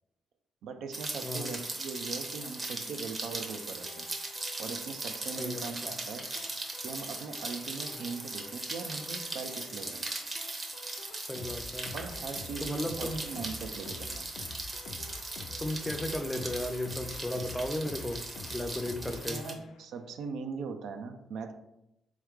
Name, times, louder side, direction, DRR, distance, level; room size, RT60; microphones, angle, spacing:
voice 1, 0.6-4.1 4.6-6.3 6.8-10.0 11.9-14.3 19.1-21.5, right 5 dB, 75° right, 7 dB, 0.4 m, -40 dB
Rain, 0.9-19.5, right 2 dB, 25° right, 0.7 m, -39 dB
voice 2, 1.2-1.5 5.4-5.7 11.3-11.9 12.6-13.2 15.6-18.2 18.5-19.4, left 1 dB, 10° left, 7 dB, 0.4 m, -35 dB
sound 1, 3.4-20.0, left 3 dB, 75° left, 0.4 m, -48 dB
3.6 x 3.1 x 3.4 m, 0.86 s
cardioid pair, 90°, 0 cm